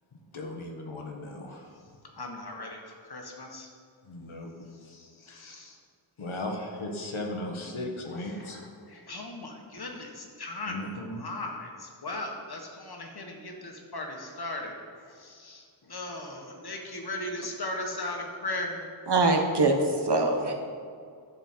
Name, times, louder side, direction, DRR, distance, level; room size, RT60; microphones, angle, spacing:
voice 1, 0.3-1.7 4.1-4.5 4.8-5.5 6.2-8.7 10.7-11.2, left 1 dB, 80° left, 1 dB, 1.5 m, -37 dB
voice 2, 2.2-3.7 4.7-4.9 5.2-5.8 8.2-14.7 15.0-18.8, left 2 dB, 50° left, 1 dB, 1.6 m, -38 dB
voice 3, 19.1-20.5, right 2 dB, 55° right, 2 dB, 1.2 m, -23 dB
11.0 x 6.9 x 4.5 m, 2.2 s
wide cardioid pair, 75°, 48 cm